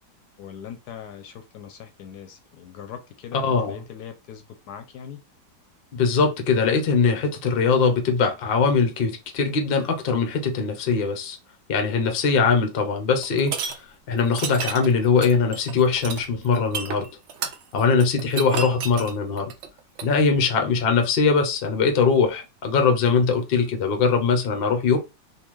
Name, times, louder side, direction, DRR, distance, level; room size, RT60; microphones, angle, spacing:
voice 1, 0.4-5.2, left 8 dB, 75° left, 1.1 m, -41 dB
voice 2, 3.3-3.8 5.9-11.4 11.7-13.7 14.1-17.1 17.7-19.5 20.0-25.0, left 5 dB, 50° left, 0.7 m, -21 dB
sound 1, 13.2-13.7 14.3-20.1, right 6 dB, 80° right, 0.6 m, -31 dB
3.7 x 2.6 x 3.1 m
omnidirectional pair, 1.9 m